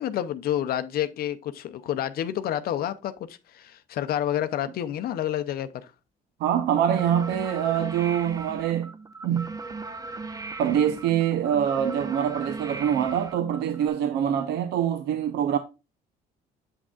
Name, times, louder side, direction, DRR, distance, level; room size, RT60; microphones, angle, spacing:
voice 1, 0.0-5.9, left 11 dB, 65° left, 0.6 m, -29 dB
voice 2, 6.4-8.9 9.2-9.5 10.6-15.6, right 9 dB, 75° right, 0.7 m, -24 dB
sound 1, 6.8-13.9, right 3 dB, 20° right, 0.7 m, -38 dB
7.8 x 6.1 x 2.4 m
cardioid pair, 110°, 17 cm